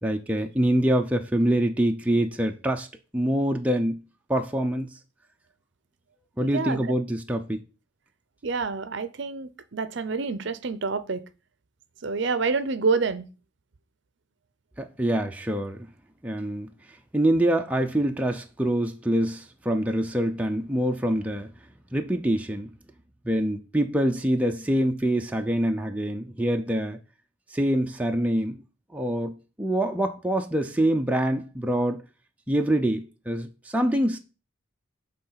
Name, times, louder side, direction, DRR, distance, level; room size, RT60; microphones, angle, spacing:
voice 1, 0.0-2.9 3.1-4.0 4.3-4.9 6.4-7.6 14.8-15.8 16.2-16.7 17.1-21.5 21.9-22.7 23.3-27.0 27.5-28.6 28.9-32.0 32.5-34.2, right 1 dB, 5° right, 0.5 m, -25 dB
voice 2, 6.4-6.8 8.4-11.2 12.0-13.2, right 4 dB, 55° right, 0.6 m, -27 dB
7.9 x 3.8 x 5.7 m
head